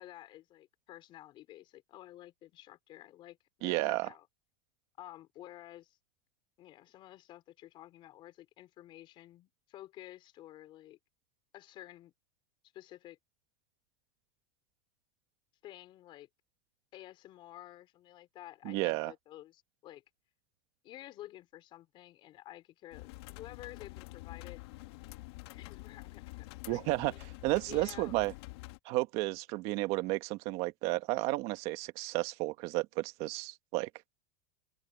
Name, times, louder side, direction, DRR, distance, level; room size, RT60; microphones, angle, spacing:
voice 1, 0.0-4.3 5.0-6.0 6.6-11.0 11.5-12.1 12.7-13.2 15.6-16.3 16.9-20.0 20.8-24.6 25.5-27.2 27.6-28.1, left 14 dB, 35° left, 4.8 m, -51 dB
voice 2, 3.6-4.1 18.6-19.1 26.7-27.1 27.4-28.3 28.8-33.9, right 20 dB, 45° right, 1.4 m, -32 dB
sound 1, 22.9-28.8, left 21 dB, 60° left, 2.9 m, -47 dB
open air
supercardioid pair, 160°, 15 cm